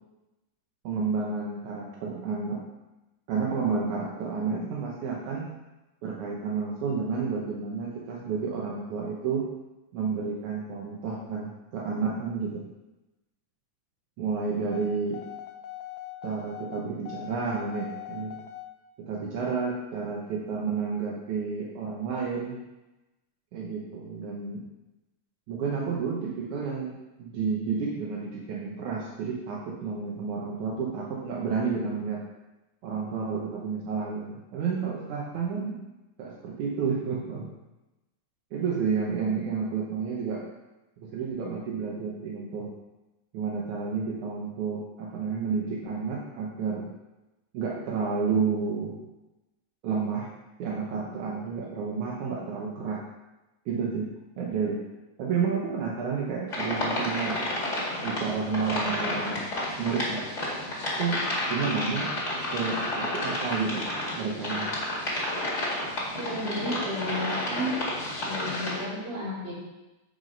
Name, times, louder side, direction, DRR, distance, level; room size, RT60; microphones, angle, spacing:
voice 1, 0.8-2.6 3.3-5.5 6.0-9.5 9.9-12.7 14.2-15.2 16.2-18.4 19.0-22.6 23.5-24.6 25.5-32.2 32.8-35.8 36.2-37.5 38.5-40.4 41.1-42.7 43.3-46.9 47.5-49.0 49.8-50.3 50.6-53.0 53.7-54.1 54.4-54.8 55.2-57.5 58.0-59.5 59.8-60.2 61.0-62.1 62.5-63.9 64.2-64.7, right 5 dB, 75° right, -3 dB, 2.4 m, -30 dB
sound 1, 14.7-18.7, left 13 dB, 90° left, 2.2 m, -41 dB
sound 2, 56.5-68.8, left 1 dB, 25° left, 1.9 m, -31 dB
voice 2, 66.2-67.8 68.2-69.5, left 1 dB, 35° right, -7 dB, 3.2 m, -32 dB
8.2 x 5.0 x 5.3 m, 1.0 s
omnidirectional pair, 3.6 m